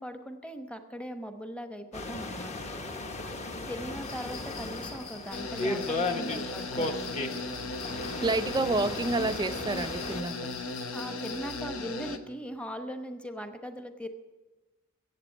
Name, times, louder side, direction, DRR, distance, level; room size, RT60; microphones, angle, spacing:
voice 1, 0.0-2.7 3.7-7.3 10.9-14.1, equal, 5° left, 0.9 m, -40 dB
sound 1, 1.9-10.2, left 2 dB, 30° left, 1.1 m, -36 dB
sound 2, 4.0-11.7, left 5 dB, 50° left, 3.0 m, -46 dB
sound 3, 5.3-12.2, left 2 dB, 70° left, 1.0 m, -37 dB
voice 2, 8.2-10.5, right 2 dB, 20° right, 0.4 m, -29 dB
15.0 x 8.3 x 9.1 m
head